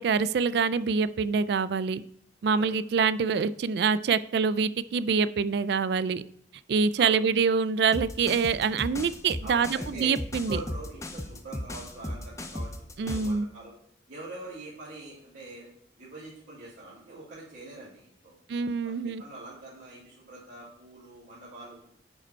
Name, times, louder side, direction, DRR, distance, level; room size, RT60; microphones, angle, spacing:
voice 1, 0.0-2.0 2.4-6.2 6.7-10.6 13.0-13.5 18.5-19.2, right 5 dB, 60° right, 16 dB, 0.3 m, -25 dB
voice 2, 7.0-7.3 9.4-10.1 10.5-12.7 12.9-13.7 14.1-15.7 16.0-18.3 18.8-21.9, right 2 dB, 80° right, -11 dB, 3.1 m, -43 dB
sound 1, 7.9-13.4, left 1 dB, 15° left, 0.5 m, -36 dB
9.7 x 5.0 x 4.4 m, 0.70 s
head